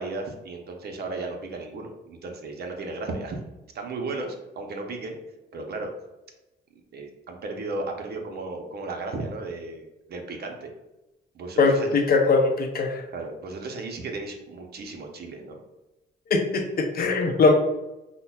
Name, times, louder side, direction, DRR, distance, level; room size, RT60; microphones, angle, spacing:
voice 1, 0.0-3.4 3.7-5.2 5.5-5.9 6.9-10.7 11.3-11.9 13.1-15.6, right 3 dB, 55° right, 3 dB, 0.7 m, -35 dB
voice 2, 11.6-13.0 16.3-17.5, left 3 dB, 50° left, 3 dB, 0.6 m, -21 dB
5.4 x 2.1 x 2.3 m, 0.99 s
cardioid pair, 90°, 20 cm